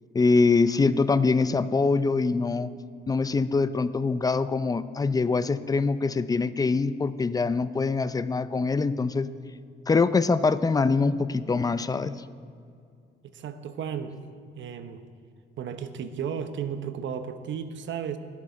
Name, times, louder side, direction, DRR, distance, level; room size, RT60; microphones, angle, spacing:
voice 1, 0.1-2.7 3.1-9.3 9.9-12.1, left 4 dB, 20° left, 14 dB, 0.5 m, -24 dB
voice 2, 13.3-14.1 14.5-15.0 15.6-18.2, right 7 dB, 70° right, 10 dB, 0.9 m, -34 dB
21.5 x 7.4 x 3.9 m, 2.3 s
cardioid pair, 90°, 20 cm